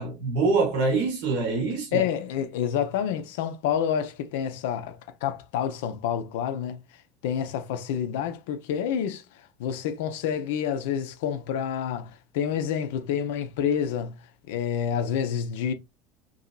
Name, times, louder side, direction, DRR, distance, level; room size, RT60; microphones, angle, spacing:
voice 1, 0.0-2.0, right 3 dB, 65° right, 0.9 m, -25 dB
voice 2, 1.9-6.8 7.2-9.2 9.6-14.2 14.5-15.7, left 8 dB, 70° left, 0.4 m, -28 dB
2.7 x 2.7 x 2.2 m
hypercardioid pair, 75°, 0 cm